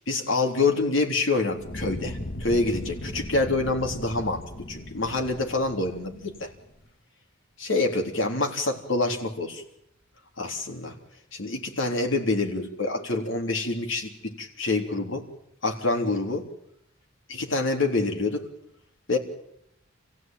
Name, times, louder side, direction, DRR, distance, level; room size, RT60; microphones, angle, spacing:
voice 1, 0.0-4.4 4.7-6.5 7.6-9.6 10.4-10.9 11.3-15.2 15.6-16.5 17.3-18.4 19.1-19.2, left 3 dB, 70° left, 2 dB, 3.5 m, -26 dB
Fire, 1.5-6.7, left 1 dB, 50° left, 1.9 m, -38 dB
27.5 x 16.0 x 9.1 m, 0.78 s
head